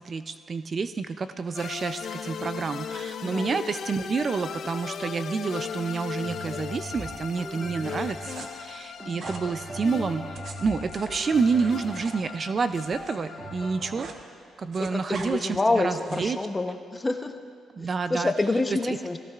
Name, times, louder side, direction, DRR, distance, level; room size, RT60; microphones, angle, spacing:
voice 1, 0.0-14.1 14.6-16.4 17.7-18.3 18.8-19.2, right 5 dB, 40° right, 10 dB, 0.4 m, -29 dB
sound 1, 1.5-13.8, left 7 dB, 60° left, 0.5 m, -38 dB
sound 2, 6.2-14.1, right 1 dB, 20° right, 1.4 m, -41 dB
voice 2, 7.5-8.0 14.8-17.3 17.8-19.2, left 2 dB, 20° left, 6 dB, 0.9 m, -27 dB
sound 3, 8.2-8.5 9.2-9.5 10.2-13.2 13.5-14.2 14.5-15.3 15.9-16.4, right 4 dB, 60° right, 1.1 m, -43 dB
17.0 x 16.0 x 2.4 m, 2.1 s
cardioid pair, 90°, 0 cm